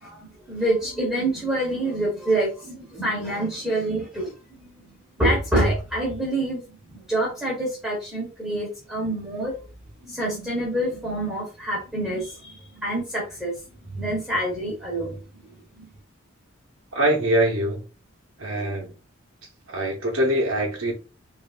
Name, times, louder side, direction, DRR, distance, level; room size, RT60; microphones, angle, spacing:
voice 1, 0.0-4.3 4.6-4.8 5.2-6.6 6.9-9.6 10.0-13.5 13.9-15.2 15.8-15.9, right 1 dB, ahead, 1.2 m, -26 dB
voice 2, 16.9-17.8 18.4-18.9 19.7-20.9, right 1 dB, 80° right, 0.8 m, -23 dB
5.1 x 2.6 x 2.5 m
head